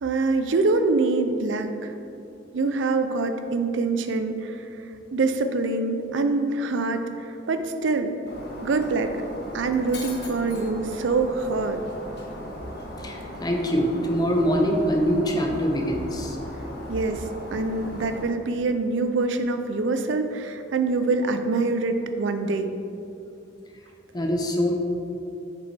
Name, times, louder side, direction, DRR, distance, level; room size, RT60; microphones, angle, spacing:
voice 1, 0.0-1.9 2.5-4.6 5.1-7.0 7.5-8.1 8.6-9.1 9.5-11.8 16.9-17.2 17.5-22.7, right 3 dB, 75° right, 8 dB, 0.5 m, -25 dB
Shatter, 8.3-18.2, equal, 55° left, 1.1 m, -38 dB
voice 2, 13.0-16.4 24.1-24.8, equal, 20° left, 1 dB, 0.7 m, -24 dB
7.5 x 5.1 x 3.4 m, 2.7 s
head